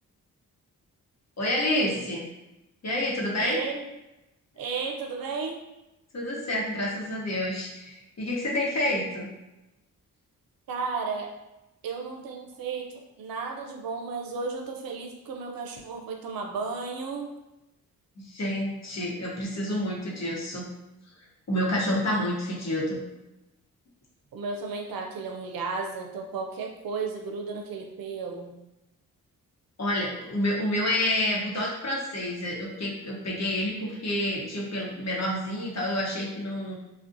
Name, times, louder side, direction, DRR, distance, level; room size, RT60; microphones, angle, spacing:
voice 1, 1.4-2.2 2.8-3.6 6.1-9.3 18.2-20.7 21.5-23.0 29.8-36.8, left 1 dB, 45° left, -3 dB, 0.9 m, -28 dB
voice 2, 3.4-3.8 4.6-5.6 10.7-11.3 11.8-17.3 24.3-28.5, right 4 dB, 65° right, 2 dB, 0.5 m, -33 dB
2.4 x 2.1 x 2.5 m, 0.96 s
supercardioid pair, 45°, 38 cm